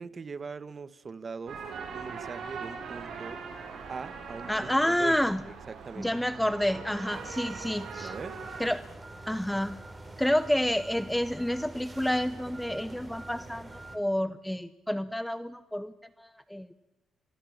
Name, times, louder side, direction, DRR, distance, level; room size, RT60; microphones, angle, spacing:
voice 1, 0.0-1.6 1.9-3.4 3.9-5.1 5.7-6.1 8.0-8.4, right 5 dB, 35° right, 16 dB, 1.3 m, -41 dB
sound 1, 1.5-8.7, right 5 dB, 65° right, 6.9 m, -41 dB
voice 2, 4.5-5.4 6.0-8.1 8.6-8.8 9.3-9.8 10.2-16.7, left 1 dB, 5° left, 14 dB, 0.8 m, -29 dB
sound 2, 7.1-14.0, right 2 dB, 20° right, 4.1 m, -45 dB
28.5 x 24.0 x 7.3 m, 1.1 s
cardioid pair, 90°, 0 cm